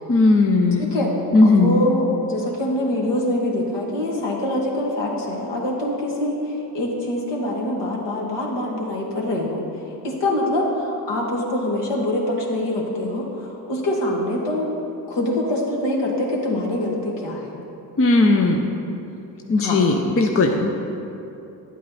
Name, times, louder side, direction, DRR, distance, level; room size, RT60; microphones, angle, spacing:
voice 1, 0.1-0.9 1.3-1.9 18.0-18.7 19.5-20.8, left 2 dB, 30° left, 3 dB, 0.7 m, -17 dB
voice 2, 0.8-1.2 1.4-9.6 10.0-14.8 15.1-17.5 19.6-19.8, left 1 dB, 60° left, -2 dB, 2.0 m, -24 dB
10.5 x 8.3 x 4.2 m, 2.9 s
supercardioid pair, 60°, 47 cm